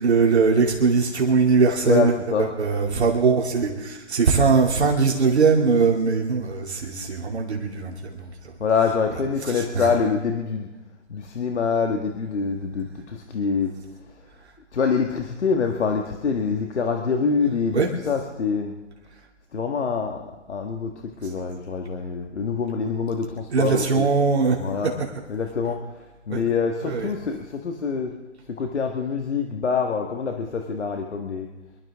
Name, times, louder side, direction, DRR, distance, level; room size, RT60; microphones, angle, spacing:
voice 1, 0.0-2.1 2.4-8.5 9.5-9.9 17.7-17.9 23.5-24.9 26.3-26.4 26.8-27.1, right 4 dB, 60° right, -1 dB, 2.7 m, -21 dB
voice 2, 1.8-2.5 8.6-10.7 11.1-13.7 14.7-18.8 19.5-20.9 21.2-24.1 24.6-24.9 25.3-25.8 26.3-28.2 28.5-31.5, left 5 dB, 65° left, 3 dB, 1.8 m, -25 dB
25.0 x 12.5 x 3.6 m, 1.1 s
hypercardioid pair, 155°, 37 cm